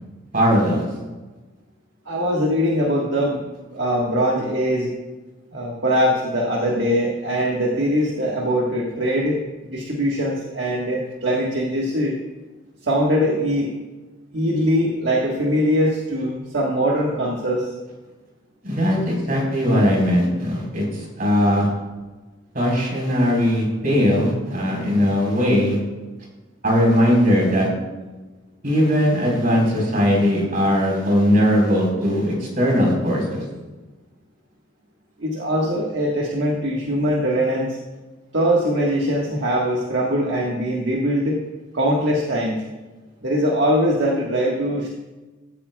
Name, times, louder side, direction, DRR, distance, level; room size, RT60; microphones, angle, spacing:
voice 1, 0.3-0.8 18.6-21.7 22.5-25.8 26.6-27.7 28.6-33.4, equal, 45° right, -2 dB, 4.3 m, -19 dB
voice 2, 2.1-3.4 3.7-4.9 5.5-12.2 12.8-13.7 14.3-17.7 35.2-37.8 38.3-41.4 41.7-42.6 43.2-44.9, equal, 60° right, -2 dB, 1.5 m, -22 dB
16.0 x 14.0 x 2.3 m, 1.2 s
head